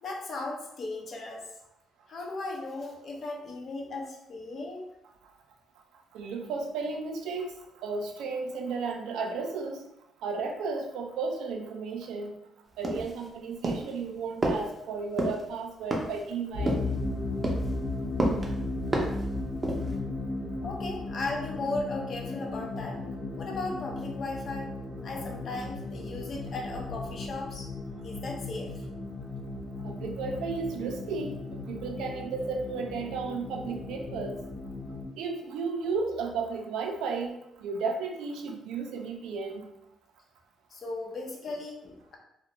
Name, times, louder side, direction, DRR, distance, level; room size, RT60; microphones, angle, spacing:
voice 1, 0.0-1.4 2.1-4.8 20.6-23.0 23.4-24.7 25.0-27.7 28.0-28.8 40.7-42.2, left 2 dB, 55° left, 0 dB, 0.6 m, -36 dB
voice 2, 6.1-7.5 7.8-9.8 10.2-12.4 12.8-16.9 29.8-34.4 35.2-39.6, right 4 dB, 85° right, 3 dB, 0.4 m, -34 dB
sound 1, 12.8-13.3 13.6-13.9 14.4-14.7 15.2-15.4 15.9-16.2 16.7-17.0 17.4-17.7 18.2-18.5 18.9-19.2 19.6-20.0, right 1 dB, 30° right, 0.5 m, -29 dB
sound 2, 16.5-35.1, left 2 dB, 85° left, 0.9 m, -36 dB
2.4 x 2.1 x 2.8 m, 0.82 s
cardioid pair, 90°, 0 cm